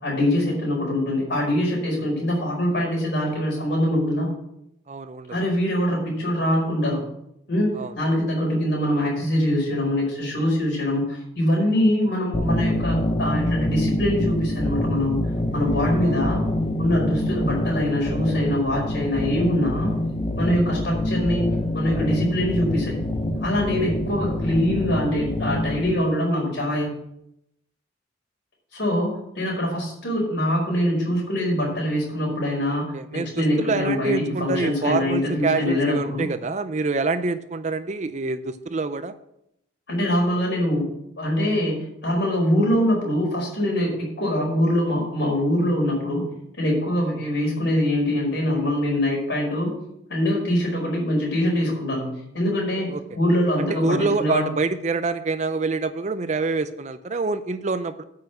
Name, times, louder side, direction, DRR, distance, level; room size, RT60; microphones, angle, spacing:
voice 1, 0.0-4.3 5.3-7.0 7.5-15.2 15.5-16.4 16.8-19.9 20.4-23.0 23.4-26.9 28.7-36.3 39.9-40.9 41.2-41.8 42.0-46.2 46.6-49.7 50.1-52.1 52.3-54.4, left 1 dB, 55° left, -2 dB, 4.7 m, -23 dB
voice 2, 4.9-5.4 7.8-7.9 16.0-16.3 32.9-39.1 52.9-53.0 53.6-58.0, right 3 dB, 35° right, 11 dB, 0.5 m, -26 dB
sound 1, 12.3-25.9, left 1 dB, 25° left, 0.8 m, -26 dB
9.1 x 5.7 x 7.6 m, 0.79 s
head